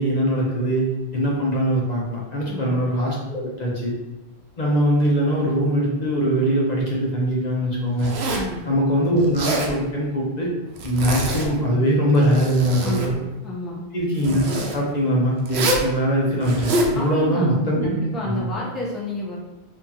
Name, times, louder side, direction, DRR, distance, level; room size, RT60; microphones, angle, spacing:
voice 1, 0.0-3.9 4.6-8.1 8.7-10.5 10.8-13.2 13.9-14.4 14.7-17.9 18.3-18.4, equal, 45° left, -4 dB, 0.7 m, -21 dB
Zipper (clothing), 8.0-8.5 9.2-9.7 10.8-11.5 12.1-13.1 14.2-14.8 15.5-15.9 16.4-16.9, right 1 dB, 85° right, 0.9 m, -25 dB
voice 2, 8.3-8.7 12.8-13.1 13.4-13.8 16.9-19.4, left 1 dB, ahead, -5 dB, 0.6 m, -30 dB
2.9 x 2.7 x 3.7 m, 1.0 s
omnidirectional pair, 1.1 m